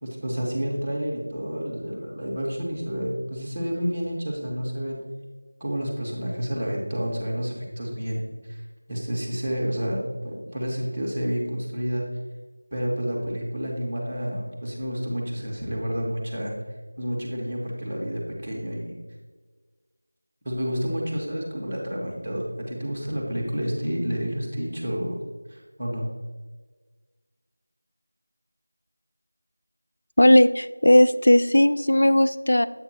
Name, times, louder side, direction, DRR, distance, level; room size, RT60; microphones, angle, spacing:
voice 1, 0.0-5.0 5.6-12.0 12.7-16.5 17.0-18.9 20.4-25.2 25.5-26.0, equal, 5° right, -8 dB, 1.6 m, -29 dB
voice 2, 30.2-32.7, left 1 dB, 60° left, 12 dB, 0.4 m, -17 dB
8.1 x 6.9 x 2.9 m, 1.4 s
figure-of-eight pair, 175°, 0 cm